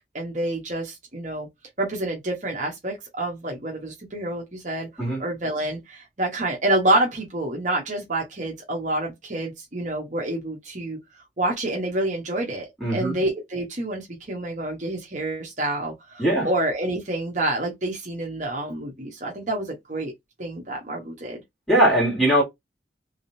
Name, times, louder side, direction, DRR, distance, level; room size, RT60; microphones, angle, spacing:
voice 1, 0.1-1.5 1.8-11.0 11.4-20.1 20.4-21.4, right 1 dB, 45° right, 1.0 m, -28 dB
voice 2, 12.8-13.2 16.2-16.5 21.7-22.4, right 1 dB, ahead, 2.4 m, -20 dB
3.6 x 3.2 x 2.6 m
head